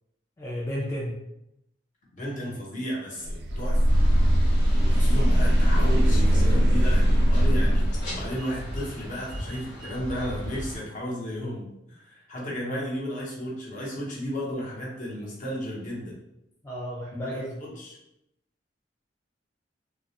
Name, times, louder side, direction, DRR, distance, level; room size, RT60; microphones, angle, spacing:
voice 1, 0.4-1.2 16.6-17.6, equal, 15° left, -6 dB, 0.3 m, -32 dB
voice 2, 2.1-3.8 4.7-16.1 17.1-18.0, equal, 45° left, -5 dB, 0.8 m, -34 dB
sound 1, 3.2-10.3, right 2 dB, 65° right, 0.4 m, -37 dB
sound 2, 3.5-8.4, equal, 85° left, 0.5 m, -20 dB
sound 3, 3.9-10.8, equal, 65° left, 1.0 m, -37 dB
2.3 x 2.0 x 2.7 m, 0.85 s
head